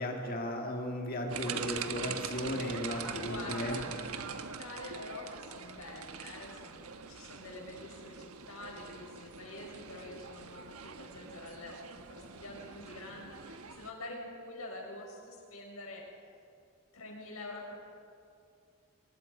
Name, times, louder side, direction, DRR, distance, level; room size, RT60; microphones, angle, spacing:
voice 1, 0.0-3.8, left 1 dB, 40° left, 2 dB, 2.1 m, -36 dB
sound 1, 1.3-13.9, right 6 dB, 85° right, 1.3 m, -43 dB
voice 2, 2.6-3.9 4.2-16.1 16.9-17.7, left 2 dB, 80° left, 0 dB, 6.1 m, -46 dB
24.5 x 23.5 x 5.4 m, 2.3 s
head